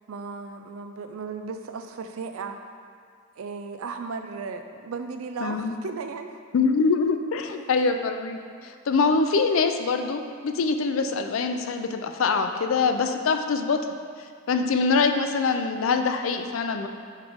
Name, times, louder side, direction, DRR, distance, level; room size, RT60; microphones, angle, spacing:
voice 1, 0.1-2.6 3.4-6.3, right 4 dB, 90° right, 7 dB, 0.4 m, -35 dB
voice 2, 5.4-5.8 6.5-13.8 14.5-16.9, left 4 dB, 75° left, 7 dB, 0.4 m, -24 dB
8.6 x 3.2 x 3.5 m, 2.1 s
head